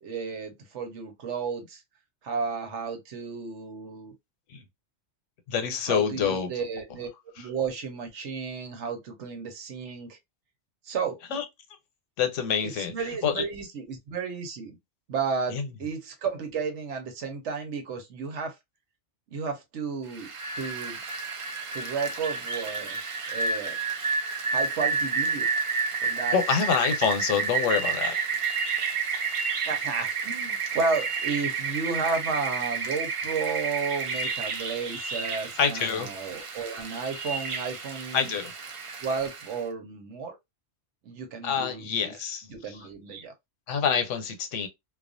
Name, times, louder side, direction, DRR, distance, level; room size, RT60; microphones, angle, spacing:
voice 1, 0.0-1.8 2.2-4.1 5.9-7.1 7.4-10.2 10.8-11.2 12.8-14.8 15.1-18.5 19.3-20.3 20.6-21.0 21.7-23.8 24.5-25.5 26.0-26.4 29.6-38.3 39.0-40.4 41.0-42.1 42.5-43.3, right 5 dB, 75° right, 1.1 m, -33 dB
voice 2, 5.5-6.5 11.3-11.4 12.2-12.9 13.2-13.4 15.5-15.7 26.3-28.2 35.6-36.1 38.1-38.5 41.4-42.8 43.7-44.7, left 7 dB, 85° left, 1.0 m, -26 dB
Rain, 20.1-39.6, right 5 dB, 60° right, 0.3 m, -30 dB
2.4 x 2.3 x 2.5 m
omnidirectional pair, 1.2 m